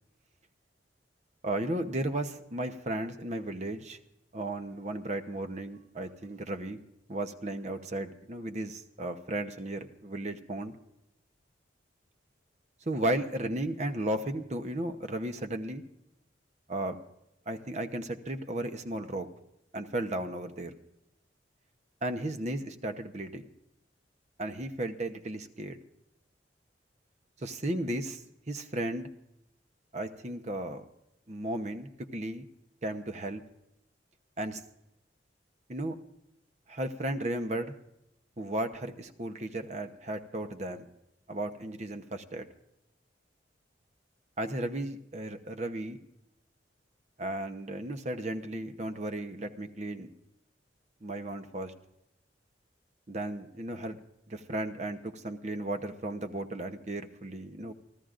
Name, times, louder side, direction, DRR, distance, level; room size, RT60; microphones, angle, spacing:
voice 1, 1.4-4.0 4.3-6.8 7.1-10.7 12.9-15.8 16.7-17.0 17.5-19.3 19.7-20.8 22.0-23.5 24.4-25.8 27.4-28.2 28.5-29.1 29.9-30.8 31.3-32.5 32.8-33.4 34.4-34.6 35.7-36.0 36.7-37.7 38.4-40.9 41.3-42.5 44.4-46.0 47.2-50.1 51.0-51.7 53.1-54.0 54.3-57.7, right 1 dB, 40° right, 8 dB, 0.9 m, -35 dB
29.5 x 13.0 x 2.6 m, 0.84 s
head